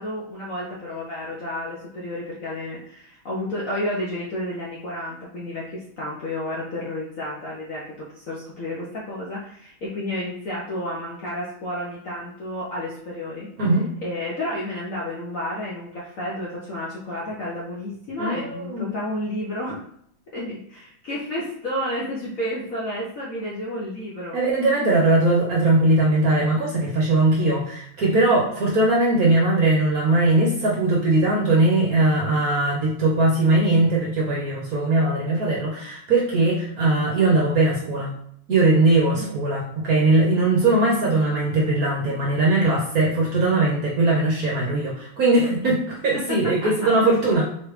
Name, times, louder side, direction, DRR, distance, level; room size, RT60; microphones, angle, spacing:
voice 1, 0.0-13.5 14.0-19.8 20.3-24.4 39.1-39.4 46.1-46.7 47.3-47.4, left 1 dB, 60° left, -6 dB, 0.9 m, -31 dB
voice 2, 18.2-18.9 24.3-38.1 38.5-47.4, right 2 dB, 60° right, -3 dB, 1.0 m, -20 dB
3.7 x 3.2 x 3.2 m, 0.67 s
omnidirectional pair, 2.2 m